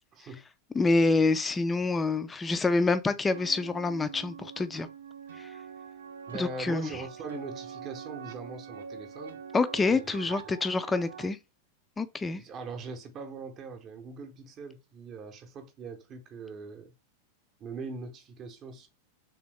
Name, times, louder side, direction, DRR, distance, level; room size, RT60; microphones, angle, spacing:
voice 1, 0.1-0.5 6.3-9.4 9.9-10.2 10.4-10.6 12.3-16.9 17.6-18.9, right 4 dB, 30° right, 0.8 m, -41 dB
voice 2, 0.7-4.9 6.3-6.9 9.5-11.4 12.0-12.4, left 3 dB, 15° left, 0.4 m, -27 dB
sound 1, 3.3-11.3, right 7 dB, 65° right, 0.4 m, -44 dB
3.5 x 3.3 x 3.1 m
figure-of-eight pair, 90°, 0 cm